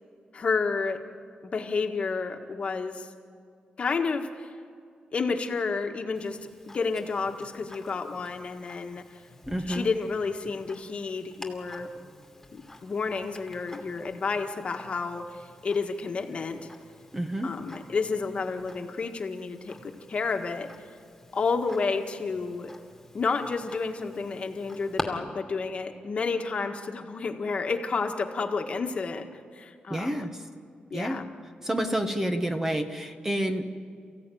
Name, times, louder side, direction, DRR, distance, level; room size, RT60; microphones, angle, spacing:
voice 1, 0.3-1.0 1.4-3.1 3.8-4.5 5.1-6.4 6.7-9.2 9.7-11.9 12.5-16.6 17.4-20.7 21.3-22.7 23.1-29.3 29.5-30.3 30.9-31.3, left 4 dB, 45° left, 4 dB, 1.7 m, -30 dB
Tick-tock, 6.1-25.0, left 2 dB, 10° left, 2.4 m, -46 dB
voice 2, 9.5-9.9 17.1-17.5 29.9-30.5 30.9-31.3 31.6-33.6, right 1 dB, 15° right, 6 dB, 1.4 m, -29 dB
29.5 x 15.5 x 9.3 m, 2.2 s
wide cardioid pair, 140°, 3 cm